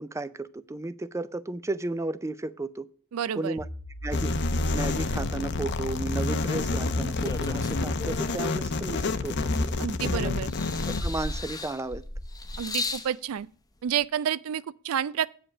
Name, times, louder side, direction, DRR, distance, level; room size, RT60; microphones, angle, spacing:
voice 1, 0.0-2.9 3.3-3.7 4.0-4.3 4.7-9.5 10.0-10.3 10.9-12.0, right 2 dB, 15° right, 0.4 m, -34 dB
voice 2, 3.1-3.6 9.8-10.5 12.6-13.5 13.8-15.3, right 9 dB, 85° right, 0.4 m, -29 dB
sound 1, 3.6-8.1, equal, 75° left, 1.9 m, -39 dB
sound 2, 4.1-11.0, left 3 dB, 55° left, 0.7 m, -28 dB
sound 3, 7.2-8.4 9.0-10.1 10.5-13.1 14.0-14.1, left 2 dB, 20° left, 0.8 m, -35 dB
8.6 x 5.1 x 7.0 m
head